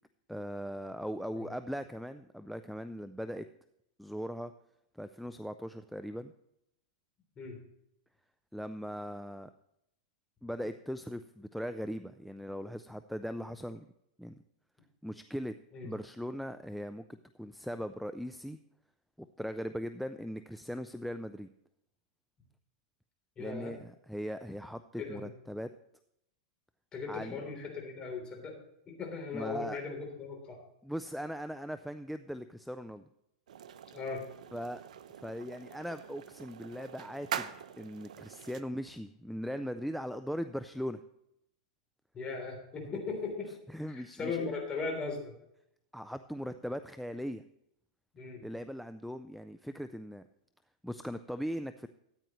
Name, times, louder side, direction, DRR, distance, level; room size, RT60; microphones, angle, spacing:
voice 1, 0.3-3.5 4.0-4.5 4.9-6.3 8.5-9.5 10.4-13.9 14.2-14.4 15.0-15.6 15.8-18.6 19.2-21.5 23.4-25.7 27.1-27.4 29.3-29.8 30.8-33.1 34.5-34.8 35.2-37.5 37.8-41.0 43.7-44.5 45.9-47.4 48.4-50.2 50.8-51.9, equal, ahead, 10 dB, 0.3 m, -39 dB
voice 2, 23.4-23.7 25.0-25.3 26.9-28.6 28.9-30.6 33.9-34.2 42.1-43.5 43.9-45.3 48.1-48.4, left 4 dB, 25° left, 2 dB, 3.3 m, -38 dB
sound 1, 33.5-38.6, right 9 dB, 85° right, 0.7 m, -43 dB
13.5 x 9.2 x 3.1 m, 0.80 s
supercardioid pair, 140°, 4 cm